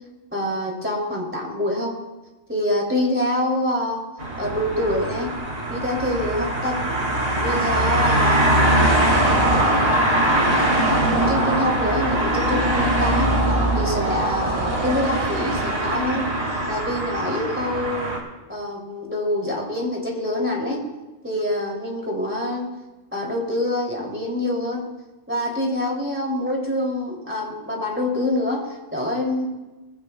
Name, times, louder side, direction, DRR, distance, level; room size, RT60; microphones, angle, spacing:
voice 1, 0.3-1.9 2.5-4.0 4.4-5.3 5.7-6.8 7.4-8.9 9.6-9.8 11.2-13.4 13.7-16.3 16.7-18.1 18.5-20.9 21.2-22.7 23.1-24.8 25.3-29.4, left 1 dB, 10° right, -2 dB, 2.8 m, -25 dB
sound 1, 4.2-18.2, right 1 dB, 50° right, 2.4 m, -21 dB
20.5 x 15.5 x 2.3 m, 1.1 s
omnidirectional pair, 1.2 m